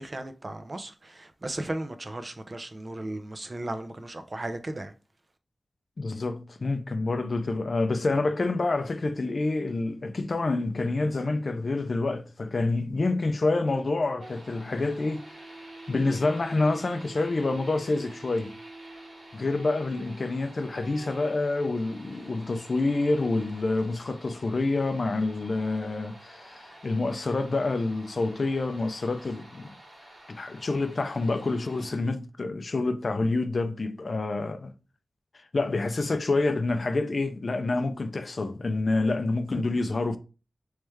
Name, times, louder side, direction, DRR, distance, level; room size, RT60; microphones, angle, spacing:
voice 1, 0.0-4.9, right 1 dB, 35° right, 0.5 m, -36 dB
voice 2, 6.0-15.5 15.9-18.5 19.3-29.8 30.3-34.7 35.5-40.2, left 3 dB, 55° left, 0.4 m, -27 dB
sound 1, 14.2-32.0, right 1 dB, 80° right, 1.7 m, -48 dB
3.4 x 3.2 x 3.2 m
wide cardioid pair, 95°, 0 cm